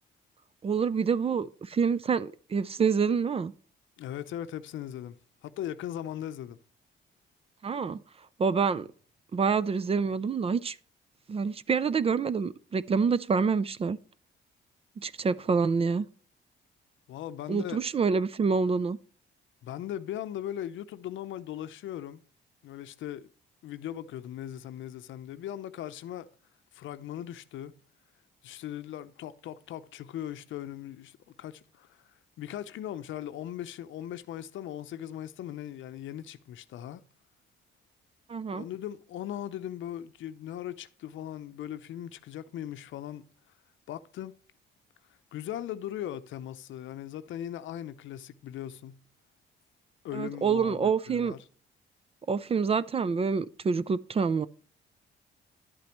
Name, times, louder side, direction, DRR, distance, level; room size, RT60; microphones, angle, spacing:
voice 1, 0.6-3.5 7.6-8.0 8.4-8.9 9.3-10.8 11.3-14.0 15.0-16.1 17.5-19.0 38.3-38.7 50.1-51.3 52.3-54.5, right 5 dB, 30° right, 0.4 m, -27 dB
voice 2, 4.0-5.2 5.4-6.6 17.1-17.8 19.6-22.2 22.6-23.3 23.6-26.3 26.7-27.7 28.4-32.0 32.4-37.0 38.5-43.2 43.9-44.3 45.3-49.0 50.0-51.4, left 11 dB, 75° left, 0.7 m, -39 dB
11.0 x 8.4 x 3.0 m
cardioid pair, 105°, 20 cm